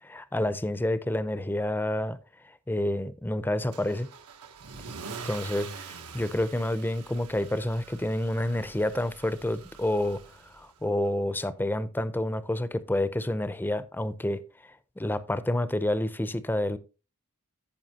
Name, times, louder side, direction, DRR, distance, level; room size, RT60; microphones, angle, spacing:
voice 1, 0.0-2.2 2.7-4.1 5.2-10.2 10.5-14.4 15.0-16.8, left 1 dB, 10° left, 0.5 m, -29 dB
Car / Engine starting / Accelerating revving vroom, 3.7-10.8, right 5 dB, 85° right, 1.2 m, -44 dB
14.0 x 5.7 x 2.8 m
head